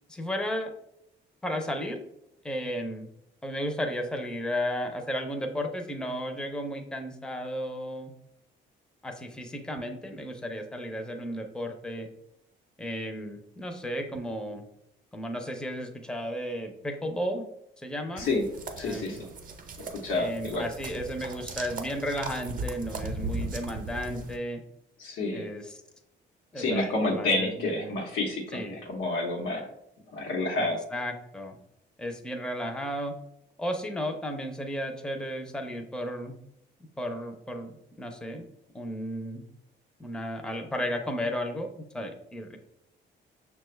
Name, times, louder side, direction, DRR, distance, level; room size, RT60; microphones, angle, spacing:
voice 1, 0.1-0.7 1.4-2.0 2.4-3.1 3.4-8.1 9.0-12.1 12.8-14.6 15.1-17.4 17.8-18.3 18.8-19.2 20.1-24.6 25.3-25.8 26.5-28.0 28.5-28.8 30.6-31.6 32.0-33.1 33.6-36.4 37.0-38.5 38.7-39.4 40.0-42.6, equal, 5° left, 4 dB, 0.6 m, -34 dB
sound 1, 18.2-24.4, right 3 dB, 45° right, 0.7 m, -38 dB
voice 2, 18.8-19.3 19.8-20.6 25.0-25.5 26.6-29.7 30.1-30.8, left 2 dB, 90° left, 0 dB, 1.0 m, -29 dB
5.8 x 2.3 x 3.2 m, 0.79 s
cardioid pair, 90°, 20 cm